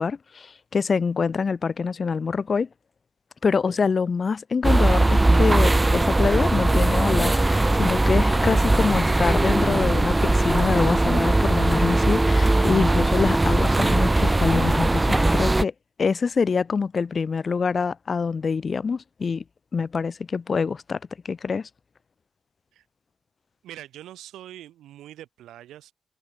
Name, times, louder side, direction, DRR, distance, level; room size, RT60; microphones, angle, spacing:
voice 1, 0.0-2.7 3.4-15.7 16.0-19.4 19.7-21.0 21.2-21.7, left 5 dB, 50° left, 0.7 m, -25 dB
sound 1, 4.6-15.6, right 2 dB, 20° right, 1.4 m, -20 dB
voice 2, 23.6-25.9, right 13 dB, 80° right, 5.4 m, -43 dB
supercardioid pair, 50°, 0 cm